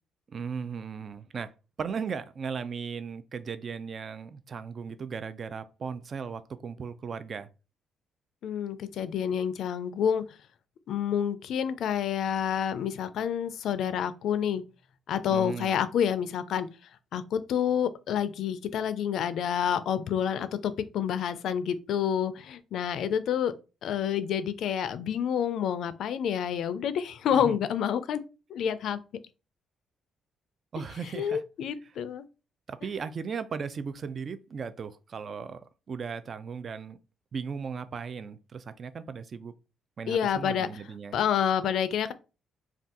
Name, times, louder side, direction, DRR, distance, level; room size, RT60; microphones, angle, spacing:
voice 1, 0.3-1.5 1.8-7.5 15.3-15.8 27.3-27.6 30.7-31.4 32.7-37.0 37.3-39.5 40.0-41.2, right 6 dB, 45° right, 0.3 m, -37 dB
voice 2, 8.4-10.2 10.9-14.6 15.1-16.7 17.1-23.5 23.8-28.2 28.5-29.0 31.2-32.2 40.1-40.7 41.1-42.1, left 8 dB, 75° left, 0.3 m, -28 dB
2.6 x 2.3 x 3.5 m
cardioid pair, 90°, 0 cm